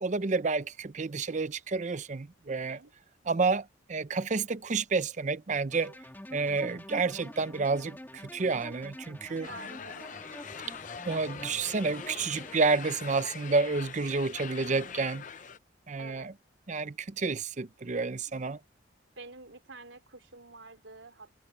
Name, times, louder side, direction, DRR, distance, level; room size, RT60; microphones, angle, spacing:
voice 1, 0.0-2.8 3.3-6.0 6.3-9.5 11.1-15.2 15.9-16.3 16.7-18.6, right 4 dB, 40° right, 0.5 m, -30 dB
voice 2, 2.5-2.9 9.5-10.2 16.0-16.3 18.3-18.4 19.2-21.3, right 3 dB, 80° right, 3.4 m, -48 dB
sound 1, 5.7-12.6, left 1 dB, 10° left, 2.7 m, -47 dB
sound 2, 9.3-15.4, left 1 dB, 70° left, 8.0 m, -59 dB
sound 3, 9.4-15.6, left 7 dB, 40° left, 0.6 m, -43 dB
head